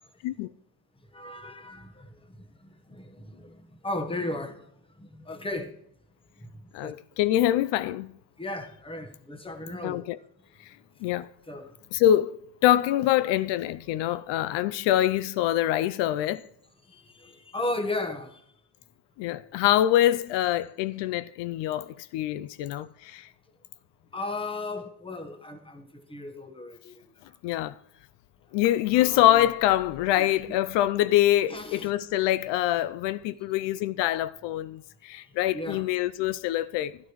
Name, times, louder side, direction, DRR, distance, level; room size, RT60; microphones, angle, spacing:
voice 1, 1.1-4.7 5.0-5.7 6.4-6.9 8.4-10.0 11.5-11.7 16.9-18.4 24.1-27.0 28.9-29.5 30.1-30.6 31.5-31.9 35.5-35.9, left 2 dB, 10° left, 1.2 m, -36 dB
voice 2, 6.7-8.2 9.8-10.2 10.6-10.7 11.0-11.3 11.9-12.3 12.6-16.5 19.2-23.3 27.4-27.8 28.5-37.0, left 13 dB, 80° left, 0.6 m, -25 dB
12.5 x 11.5 x 3.1 m
cardioid pair, 120°, 43 cm